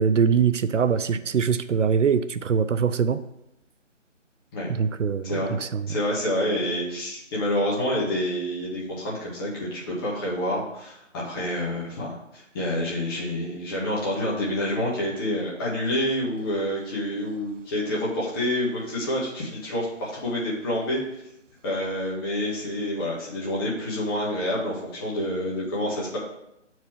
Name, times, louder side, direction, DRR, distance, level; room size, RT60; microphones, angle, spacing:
voice 1, 0.0-3.2 4.7-5.9, right 6 dB, 75° right, 13 dB, 0.6 m, -23 dB
voice 2, 5.2-5.6 5.9-21.0 21.6-26.2, left 1 dB, 20° left, -5 dB, 1.7 m, -28 dB
8.1 x 4.7 x 4.6 m, 0.85 s
figure-of-eight pair, 160°, 37 cm